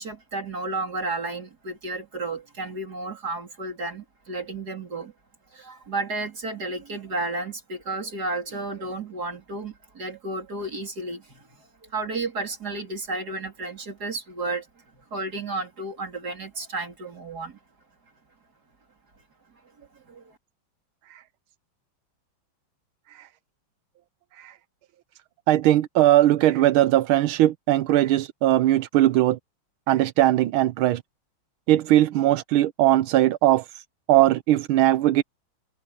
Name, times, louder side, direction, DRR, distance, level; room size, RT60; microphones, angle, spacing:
voice 1, 0.0-5.1 5.5-14.7 15.1-17.6 19.8-20.4, right 3 dB, 50° right, 4.1 m, -32 dB
voice 2, 25.5-29.4 29.9-31.0 31.7-35.2, right 14 dB, 85° right, 1.5 m, -20 dB
omnidirectional pair, 2.2 m